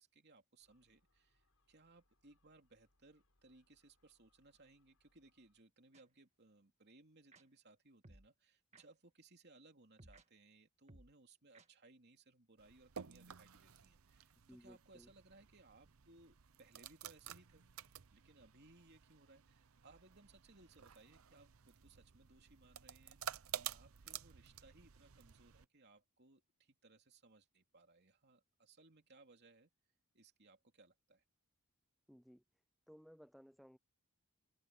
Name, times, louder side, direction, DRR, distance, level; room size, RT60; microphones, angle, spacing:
voice 1, 0.0-17.7 18.1-29.7 30.1-31.2, right 2 dB, 50° right, 3.1 m, -65 dB
Gull seagull, 0.6-5.6, left 2 dB, 70° left, 7.4 m, -81 dB
sound 1, 5.9-6.0 7.3-7.4 8.0-8.3 8.7-8.8 10.0-10.2 10.9-11.1 11.5-11.7, right 2 dB, 30° right, 1.8 m, -60 dB
sound 2, 12.6-25.7, right 9 dB, 70° right, 0.7 m, -52 dB
voice 2, 14.5-15.1 32.1-32.4 32.9-33.8, equal, ahead, 0.4 m, -60 dB
open air
head